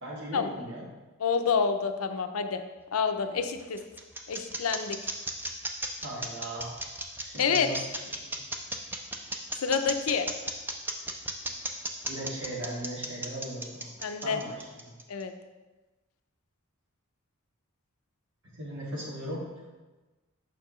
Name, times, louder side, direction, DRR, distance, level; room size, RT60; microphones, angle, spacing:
voice 1, 0.0-0.8 6.0-6.7 7.2-7.8 8.2-8.4 12.0-13.9 14.2-14.9 18.5-19.5, right 1 dB, 60° right, -4 dB, 1.8 m, -38 dB
voice 2, 1.2-2.6 2.9-3.8 4.3-5.0 7.4-7.7 9.6-10.3 14.0-14.4 15.1-15.3, left 6 dB, 80° left, 8 dB, 0.5 m, -28 dB
sound 1, 3.2-15.2, right 2 dB, 10° right, 0.5 m, -35 dB
6.5 x 5.8 x 3.1 m, 1.2 s
head